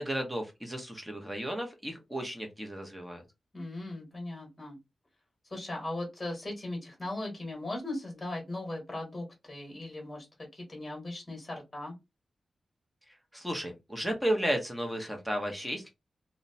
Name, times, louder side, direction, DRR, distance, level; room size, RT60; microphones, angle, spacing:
voice 1, 0.0-3.2 13.3-15.9, equal, 5° right, 3 dB, 0.7 m, -33 dB
voice 2, 3.5-4.8 5.5-12.0, left 2 dB, 20° left, 0 dB, 1.1 m, -38 dB
2.8 x 2.0 x 2.7 m, 0.22 s
wide cardioid pair, 130°, 0 cm